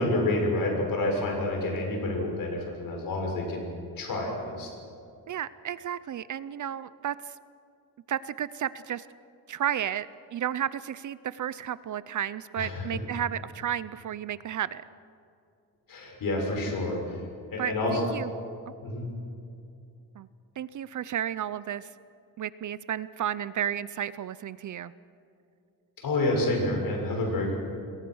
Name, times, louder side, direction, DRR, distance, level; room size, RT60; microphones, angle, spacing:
voice 1, 0.0-4.7 12.6-12.8 15.9-17.2 17.5-18.0 18.8-19.1 26.0-27.5, left 2 dB, 60° left, 1 dB, 6.7 m, -28 dB
voice 2, 5.3-7.2 8.1-9.0 9.5-10.1 10.3-14.8 17.6-18.3 20.2-20.3 20.6-21.9 22.4-24.9, right 10 dB, 50° right, 16 dB, 0.6 m, -32 dB
28.5 x 21.5 x 6.3 m, 2.5 s
wide cardioid pair, 155°, 38 cm